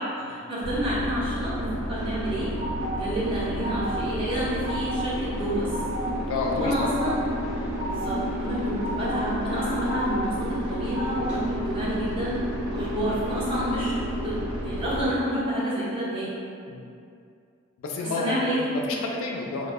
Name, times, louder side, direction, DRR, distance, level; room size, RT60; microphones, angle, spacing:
voice 1, 0.0-2.5 3.0-5.7 6.6-7.2 7.9-10.4 10.7-13.9 14.2-16.3 18.0-18.7, equal, 25° right, -8 dB, 0.6 m, -29 dB
sound 1, 0.6-15.1, equal, 75° right, 0.6 m, -31 dB
sound 2, 1.9-3.0 3.3-4.0 4.3-5.0 5.4-6.1 6.4-7.1 7.5-8.1 8.5-9.2 9.5-10.2 10.6-11.4, right 1 dB, 55° right, 1.0 m, -35 dB
voice 2, 6.3-6.9 16.7-16.8 17.8-19.7, left 3 dB, 65° left, 0 dB, 0.3 m, -30 dB
2.0 x 2.0 x 3.3 m, 2.4 s
head